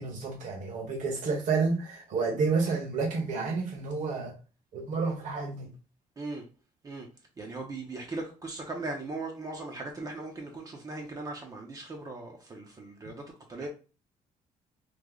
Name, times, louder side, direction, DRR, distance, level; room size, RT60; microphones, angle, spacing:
voice 1, 0.0-4.3 4.7-5.7, right 4 dB, 65° right, 1.3 m, -30 dB
voice 2, 6.2-6.5 6.8-7.1 7.4-13.2 13.5-13.7, right 2 dB, 25° right, 0.6 m, -38 dB
3.1 x 2.1 x 3.7 m
cardioid pair, 140°, 14 cm